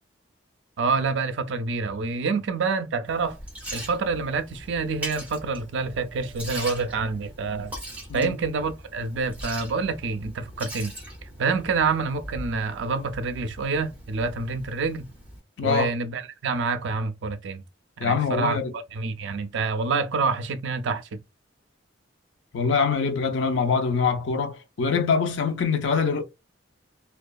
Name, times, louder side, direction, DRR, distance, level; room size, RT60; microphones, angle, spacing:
voice 1, 0.8-3.4 3.7-7.7 8.1-10.9 11.4-15.0 15.6-17.6 18.0-21.2, right 4 dB, 65° right, 0.4 m, -27 dB
Liquid, 3.1-15.4, right 1 dB, 5° right, 0.9 m, -40 dB
voice 2, 15.6-16.0 18.0-18.7 22.5-26.2, left 5 dB, 70° left, 0.5 m, -24 dB
2.7 x 2.3 x 2.2 m
head